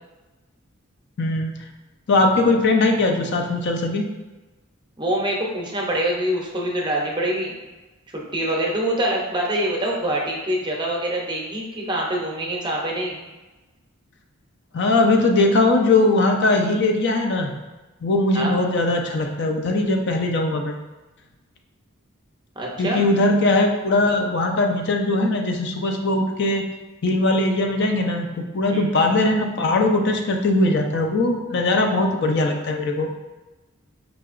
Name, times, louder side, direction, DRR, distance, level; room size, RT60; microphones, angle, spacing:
voice 1, 1.2-1.5 2.1-4.1 14.7-17.5 18.0-20.8 22.8-26.6 27.0-33.3, left 2 dB, 55° left, 3 dB, 0.4 m, -20 dB
voice 2, 5.0-7.5 8.1-13.2 18.3-18.5 22.6-23.0 28.7-28.9, right 1 dB, 20° right, -2 dB, 0.6 m, -25 dB
5.0 x 2.8 x 2.4 m, 1.1 s
head